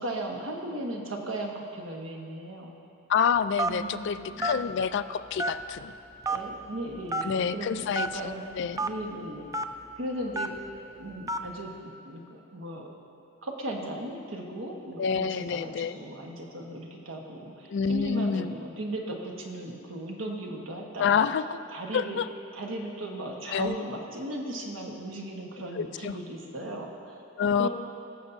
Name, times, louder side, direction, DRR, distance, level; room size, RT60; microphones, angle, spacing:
voice 1, 0.0-2.7 3.7-4.7 6.3-9.5 10.0-10.5 10.7-11.7 12.0-12.9 13.4-21.3 21.7-22.2 22.5-27.7, right 1 dB, 80° right, 0 dB, 1.3 m, -37 dB
voice 2, 3.1-6.0 7.2-8.8 15.0-16.0 17.7-18.5 21.0-21.4 21.9-22.3 23.5-23.8 25.8-26.2 27.4-27.7, left 6 dB, 60° left, 12 dB, 0.3 m, -28 dB
Telephone, 3.6-3.9 4.4-4.6 5.4-5.8 6.2-6.4 7.1-7.3 7.9-8.1 8.8-8.9 9.5-9.6 10.3-10.6 11.3-11.5, right 2 dB, 15° right, 0.3 m, -28 dB
21.0 x 7.1 x 2.7 m, 2.7 s
head